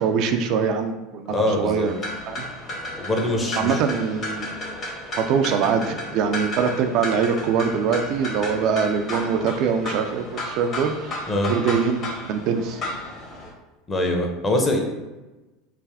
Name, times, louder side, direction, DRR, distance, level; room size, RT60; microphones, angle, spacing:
voice 1, 0.0-1.9 2.3-2.4 3.6-4.6 5.1-11.2 11.5-12.8, right 6 dB, 60° right, 6 dB, 0.3 m, -23 dB
voice 2, 1.3-1.9 3.0-3.8 11.3-11.5 13.9-14.8, left 1 dB, 25° left, 2 dB, 0.8 m, -23 dB
sound 1, 1.9-13.5, left 1 dB, 45° left, 1.4 m, -33 dB
3.3 x 2.5 x 3.4 m, 1.1 s
hypercardioid pair, 90°, 0 cm